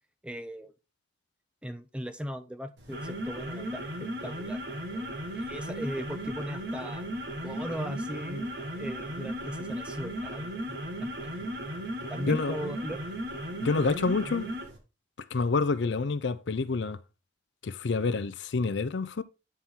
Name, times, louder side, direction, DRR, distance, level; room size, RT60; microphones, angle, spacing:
voice 1, 0.2-0.7 1.6-4.6 4.9-7.1 7.4-11.5 12.1-13.1, equal, 5° right, 0.5 m, -39 dB
sound 1, 2.8-14.8, equal, 70° right, 1.6 m, -36 dB
voice 2, 12.3-12.7 13.6-14.5 15.3-17.0 17.6-19.2, left 4 dB, 80° left, 0.5 m, -28 dB
9.5 x 4.4 x 3.6 m
head